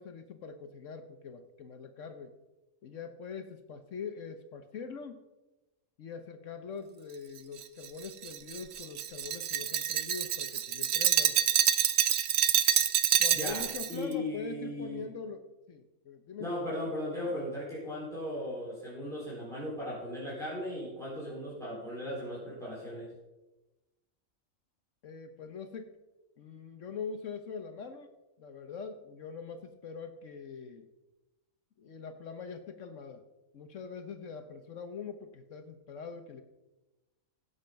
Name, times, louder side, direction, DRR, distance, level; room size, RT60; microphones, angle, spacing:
voice 1, 0.0-2.3 2.8-5.2 6.0-11.4 13.2-16.5 25.0-26.0 26.4-30.9 31.8-33.2 33.5-36.4, left 5 dB, 65° left, 7 dB, 1.2 m, -43 dB
Glass, 7.6-13.9, right 10 dB, 60° right, 0.8 m, -27 dB
voice 2, 13.9-15.0 16.4-23.1, left 1 dB, ahead, -7 dB, 4.0 m, -37 dB
16.5 x 7.0 x 5.1 m, 1.0 s
omnidirectional pair, 1.4 m